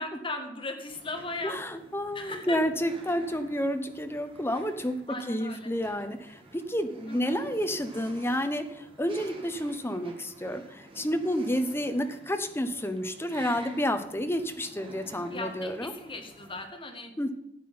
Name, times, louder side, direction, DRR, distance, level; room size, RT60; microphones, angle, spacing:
voice 1, 0.0-1.6 2.1-2.6 5.1-5.7 7.1-7.4 15.2-17.3, left 2 dB, 30° left, 3 dB, 2.0 m, -37 dB
sound 1, 0.9-16.7, right 1 dB, 30° right, 2.1 m, -50 dB
voice 2, 1.4-5.0 5.3-15.9 17.2-17.3, equal, 15° left, 7 dB, 1.1 m, -30 dB
12.0 x 8.4 x 5.7 m, 0.81 s
head